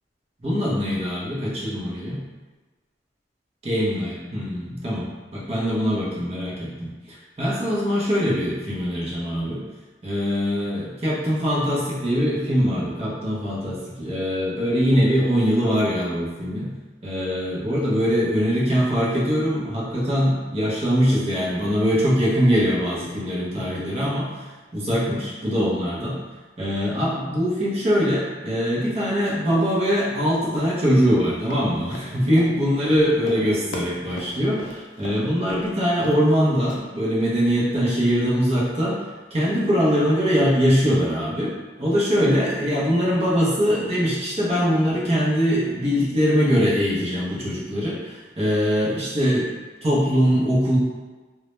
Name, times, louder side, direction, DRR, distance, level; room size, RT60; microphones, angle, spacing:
voice 1, 0.4-2.2 3.6-5.0 5.3-6.9 7.4-9.6 10.0-16.7 17.0-24.5 24.7-26.2 26.6-41.5 41.8-49.5 49.8-50.8, equal, 30° right, -6 dB, 0.6 m, -22 dB
Run, 31.4-35.2 35.5-35.7 35.9-36.3 36.7-36.8, left 1 dB, 85° left, 0.4 m, -38 dB
2.2 x 2.0 x 2.9 m, 1.3 s
head